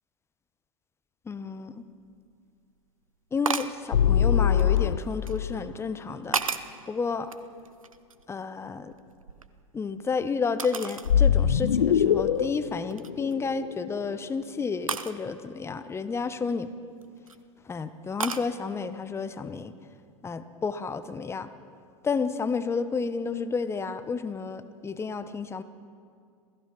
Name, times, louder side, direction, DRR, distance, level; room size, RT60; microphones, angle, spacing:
voice 1, 1.2-1.8 3.3-6.4 6.9-7.3 8.3-8.9 9.7-16.7 17.6-19.7 20.2-21.5 22.0-25.6, left 5 dB, 15° left, 11 dB, 1.0 m, -31 dB
sound 1, 2.0-2.1 3.4-3.8 4.6-5.4 6.0-6.8 7.3-8.3 8.7-9.9 10.6-11.1 11.6-11.7 12.3-12.6 12.9-13.3 14.9-15.2 16.9-17.4 18.2-18.5, right 5 dB, 85° right, 0.8 m, -33 dB
sound 2, 3.9-5.5 11.1-14.1, left 9 dB, 75° left, 0.7 m, -23 dB
27.0 x 17.0 x 6.0 m, 2.2 s
figure-of-eight pair, 90°, 17 cm